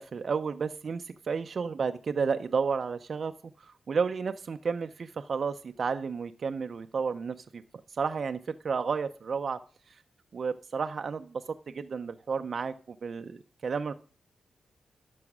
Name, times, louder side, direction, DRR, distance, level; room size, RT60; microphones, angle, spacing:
voice 1, 0.0-3.3 3.6-7.6 8.0-8.4 8.6-9.6 10.3-12.7 13.0-13.9, right 5 dB, 45° right, 9 dB, 0.4 m, -32 dB
11.0 x 6.2 x 5.9 m, 0.39 s
wide cardioid pair, 160°, 0 cm